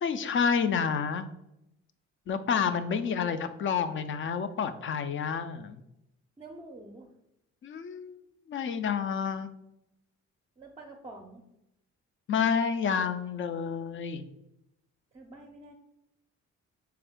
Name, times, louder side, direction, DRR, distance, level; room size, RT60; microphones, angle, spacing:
voice 1, 0.0-1.2 2.3-5.8 7.6-8.2 8.5-9.5 12.3-14.2, left 6 dB, 40° left, 11 dB, 0.4 m, -29 dB
voice 2, 6.4-7.1 10.6-11.4 15.1-15.7, right 2 dB, 20° right, 1 dB, 0.5 m, -47 dB
3.4 x 3.2 x 3.6 m, 0.83 s
cardioid pair, 90°, 30 cm